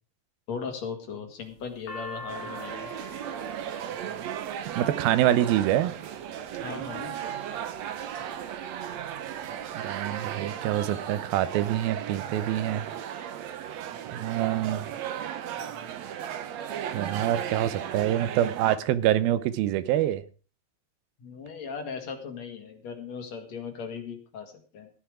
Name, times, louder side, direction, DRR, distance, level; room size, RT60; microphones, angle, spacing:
voice 1, 0.5-2.9 6.6-7.1 21.2-24.9, left 5 dB, 50° left, 3.0 m, -38 dB
sound 1, 1.4-5.7 6.5-7.0 7.6-8.2 8.6-8.7 8.8-9.7, left 2 dB, 75° left, 3.1 m, -44 dB
sound 2, 2.3-18.8, right 9 dB, 65° right, 1.8 m, -36 dB
voice 2, 4.8-6.0 9.7-12.9 13.2-13.3 14.1-14.9 16.9-20.2, right 12 dB, 90° right, 2.7 m, -26 dB
15.0 x 10.5 x 4.9 m
omnidirectional pair, 4.1 m